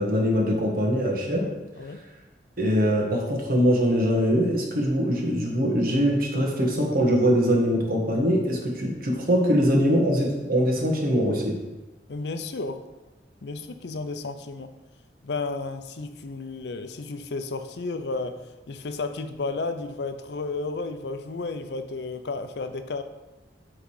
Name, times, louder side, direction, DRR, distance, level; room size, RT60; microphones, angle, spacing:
voice 1, 0.0-1.5 2.6-11.5, equal, 50° right, -1 dB, 1.5 m, -22 dB
voice 2, 1.4-2.0 12.1-12.8 13.4-14.7 15.2-18.4 18.7-23.0, left 3 dB, 70° left, 9 dB, 0.5 m, -32 dB
8.6 x 3.8 x 4.8 m, 1.1 s
head